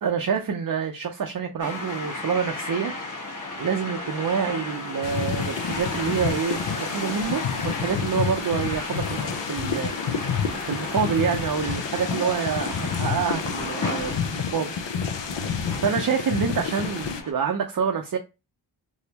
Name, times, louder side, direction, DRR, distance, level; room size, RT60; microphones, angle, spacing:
voice 1, 0.0-2.9 3.6-10.3 10.6-14.7 15.1-15.2 15.7-18.2, right 6 dB, 40° right, 0.6 m, -27 dB
sound 1, 1.6-17.3, left 2 dB, 35° left, 1.4 m, -34 dB
sound 2, 5.0-17.2, left 6 dB, 60° left, 0.7 m, -29 dB
3.4 x 2.6 x 2.9 m
cardioid pair, 65°, 50 cm